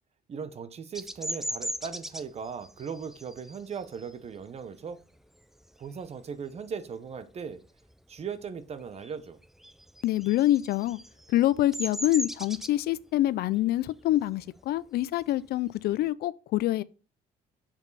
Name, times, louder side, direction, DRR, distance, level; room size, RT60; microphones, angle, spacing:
voice 1, 0.3-5.0 5.8-7.6 8.1-9.4, right 6 dB, 40° right, 0.9 m, -38 dB
Bird vocalization bird call bird song, 0.9-6.1 6.6-6.9 7.2-8.4 8.7-16.1, equal, ahead, 0.4 m, -39 dB
voice 2, 10.0-11.0 11.3-16.8, left 14 dB, 65° left, 0.4 m, -26 dB
7.2 x 5.4 x 4.0 m
cardioid pair, 110°, 17 cm